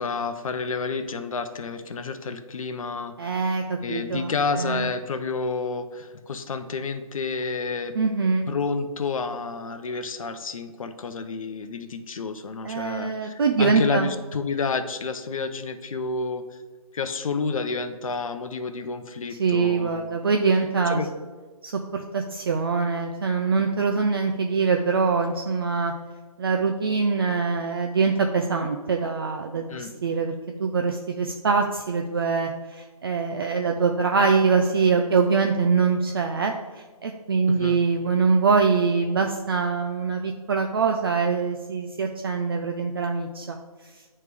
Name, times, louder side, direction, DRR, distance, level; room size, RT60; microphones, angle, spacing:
voice 1, 0.0-3.5 3.8-8.0 8.5-16.5 16.9-20.2 20.9-21.1 29.7-29.9 37.5-37.8, left 4 dB, 65° left, 9 dB, 0.6 m, -30 dB
voice 2, 3.2-4.3 4.6-4.9 8.0-8.5 12.6-14.1 19.4-21.0 21.6-25.9 26.4-30.3 30.6-43.6, right 5 dB, 40° right, 3 dB, 0.4 m, -23 dB
9.1 x 3.2 x 3.3 m, 1.4 s
hypercardioid pair, 155°, 19 cm